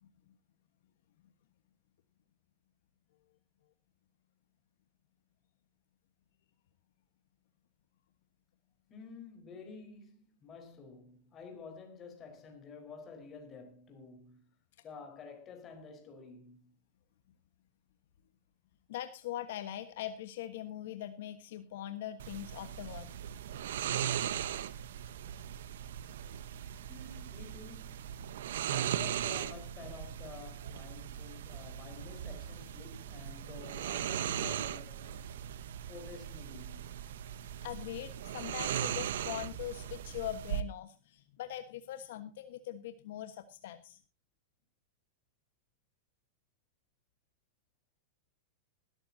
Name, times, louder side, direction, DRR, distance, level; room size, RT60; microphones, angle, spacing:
voice 1, 8.9-14.5 14.8-16.7 26.9-28.1 28.7-35.3 35.9-37.0, left 4 dB, 25° left, 4.3 m, -50 dB
voice 2, 18.9-23.2 37.6-44.0, left 12 dB, 65° left, 1.3 m, -42 dB
sound 1, 22.2-40.6, right 10 dB, 80° right, 1.1 m, -38 dB
20.0 x 13.5 x 2.8 m
supercardioid pair, 150°, 0 cm